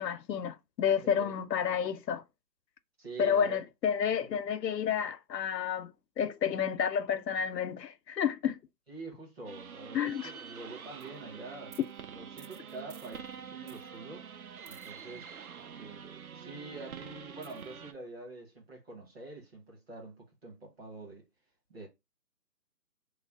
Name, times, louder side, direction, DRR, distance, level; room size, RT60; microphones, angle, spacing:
voice 1, 0.0-2.2 3.2-5.9 6.2-8.6 9.9-10.3, left 8 dB, 85° left, 0.6 m, -30 dB
voice 2, 1.0-1.3 3.0-3.6 8.9-14.3 14.6-15.3 15.8-21.2 21.7-21.9, right 3 dB, 40° right, 1.3 m, -46 dB
sound 1, 9.5-17.9, right 7 dB, 60° right, 0.5 m, -46 dB
3.1 x 2.1 x 3.6 m
hypercardioid pair, 170°, 49 cm